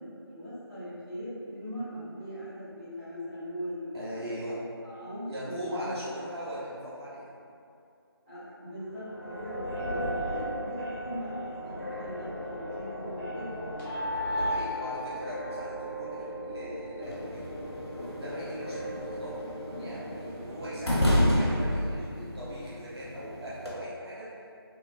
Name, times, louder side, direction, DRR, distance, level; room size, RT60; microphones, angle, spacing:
voice 1, 0.0-4.2 4.8-5.9 8.2-11.3 11.6-13.5, equal, 30° right, -16 dB, 1.5 m, -40 dB
voice 2, 3.9-4.7 5.3-7.3 14.3-17.6 18.1-19.5 19.8-24.3, equal, 80° right, -9 dB, 0.7 m, -40 dB
sound 1, 8.9-20.3, equal, ahead, 0.5 m, -36 dB
sound 2, 17.0-23.7, left 1 dB, 90° left, 0.8 m, -31 dB
3.1 x 2.3 x 2.4 m, 2.5 s
figure-of-eight pair, 165°, 13 cm